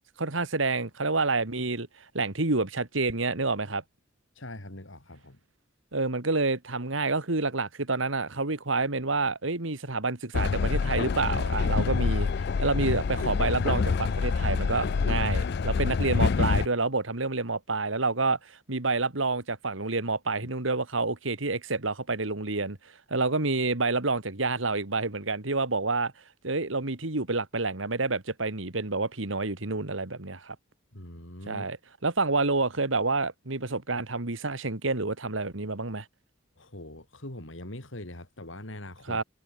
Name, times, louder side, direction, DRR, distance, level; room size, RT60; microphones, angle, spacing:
voice 1, 0.2-3.8 5.9-22.8 23.1-26.1 26.4-30.6 31.5-31.8 32.0-36.1 39.1-39.2, right 3 dB, 80° right, 2.3 m, -28 dB
voice 2, 4.4-5.4 20.4-20.5 30.9-31.7 36.6-39.2, left 1 dB, 75° left, 4.4 m, -42 dB
Train, 10.3-16.7, left 5 dB, 55° left, 0.4 m, -26 dB
head